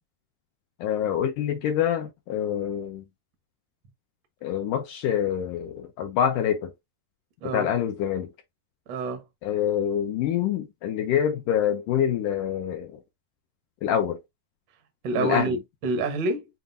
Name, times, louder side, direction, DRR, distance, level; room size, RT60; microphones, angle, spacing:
voice 1, 0.8-3.0 4.4-6.7 7.5-8.3 9.4-13.0 13.8-14.2 15.2-15.5, left 9 dB, 75° left, 2.0 m, -26 dB
voice 2, 8.9-9.2 15.0-16.5, right 3 dB, 80° right, 1.1 m, -27 dB
7.4 x 2.6 x 2.6 m
omnidirectional pair, 4.2 m